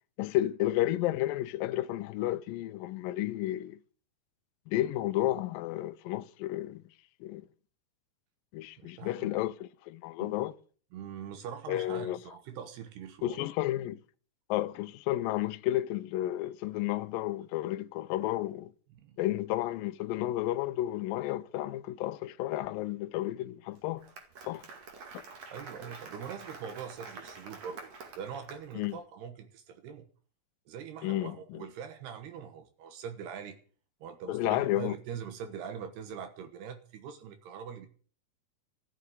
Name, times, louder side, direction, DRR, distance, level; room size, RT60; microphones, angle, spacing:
voice 1, 0.2-3.8 4.7-6.8 7.2-7.4 8.5-10.5 11.7-12.2 13.2-14.0 14.5-18.7 19.2-24.0 24.5-24.6 25.1-25.2 28.7-29.0 31.0-31.7 34.3-35.0, left 15 dB, 85° left, 2.0 m, -32 dB
voice 2, 8.8-9.4 10.2-10.4 10.9-13.5 18.9-19.2 25.5-27.9 28.2-30.1 30.7-33.6 34.0-37.9, right 7 dB, 75° right, 3.2 m, -43 dB
Applause, 23.8-28.9, right 4 dB, 45° right, 2.9 m, -47 dB
14.5 x 7.3 x 9.4 m
omnidirectional pair, 4.9 m